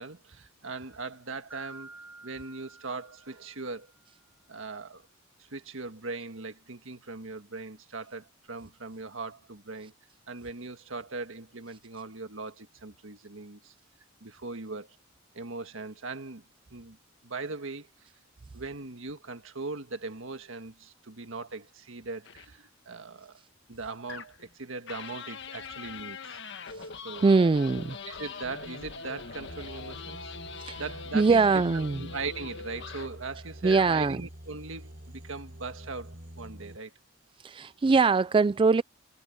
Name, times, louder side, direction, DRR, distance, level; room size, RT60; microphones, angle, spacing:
voice 1, 0.0-1.9 2.2-3.9 4.5-5.1 5.5-9.9 10.3-13.7 14.2-15.0 15.3-16.4 16.7-17.0 17.2-18.1 18.5-23.4 23.7-26.4 27.0-27.3 28.0-30.3 30.8-31.5 31.7-36.9, right 3 dB, 75° right, 1.6 m, -40 dB
Mallet percussion, 1.5-4.1, right 2 dB, 10° right, 1.1 m, -50 dB
sound 1, 22.3-22.5 24.1-24.5 24.9-33.2 33.6-34.0, left 5 dB, 60° left, 1.5 m, -42 dB
voice 2, 27.2-28.0 30.6-30.8 31.1-32.0 33.6-34.2 37.4-38.8, right 4 dB, 25° right, 0.3 m, -22 dB
sound 2, 29.5-36.8, right 1 dB, 50° right, 4.0 m, -46 dB
head